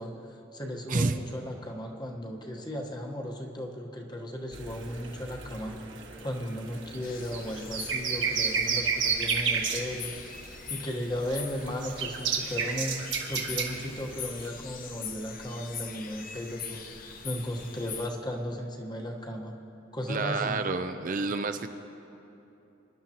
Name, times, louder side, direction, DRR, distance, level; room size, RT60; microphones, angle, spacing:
voice 1, 0.0-5.7 6.2-13.0 13.3-19.5 19.9-20.6, equal, 25° left, 1 dB, 1.2 m, -36 dB
sound 1, 4.5-14.5, right 5 dB, 65° right, 1.5 m, -32 dB
sound 2, 7.0-18.1, left 6 dB, 45° left, 0.8 m, -43 dB
voice 2, 20.1-21.7, right 3 dB, 45° right, 8 dB, 0.5 m, -29 dB
27.0 x 11.0 x 3.0 m, 2.9 s
head